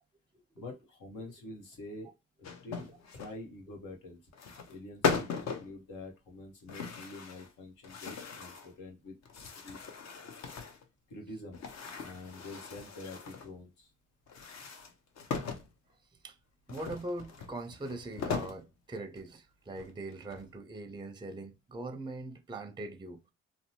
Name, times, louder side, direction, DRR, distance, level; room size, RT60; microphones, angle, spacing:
voice 1, 0.5-2.1 2.4-4.3 4.7-9.2 9.6-9.8 11.1-11.6 12.0-13.9, left 2 dB, 85° left, 1.0 m, -46 dB
sound 1, 2.4-3.3 4.3-4.7 5.0-5.7 6.7-7.5 7.8-8.7 9.2-10.8 11.5-13.5 14.3-15.7 16.7-18.6 19.2-19.3 19.7-20.5, left 5 dB, 55° left, 0.6 m, -38 dB
voice 2, 16.7-23.2, right 2 dB, 15° right, 0.5 m, -41 dB
2.7 x 2.1 x 2.7 m
supercardioid pair, 55°, 31 cm